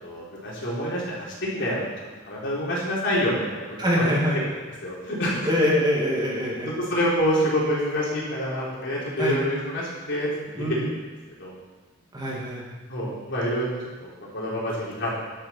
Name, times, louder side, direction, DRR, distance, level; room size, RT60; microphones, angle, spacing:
voice 1, 0.0-1.3 1.5-1.8 2.3-3.6 3.9-4.1 4.8-5.4 6.6-10.3 10.6-10.7 11.4-11.5 12.9-13.7 14.0-15.1, equal, 60° left, -6 dB, 3.8 m, -27 dB
voice 2, 3.8-4.4 5.5-6.7 9.2-9.4 10.6-10.9 12.1-12.6, equal, 20° right, -5 dB, 2.6 m, -24 dB
11.5 x 7.3 x 5.9 m, 1.3 s
head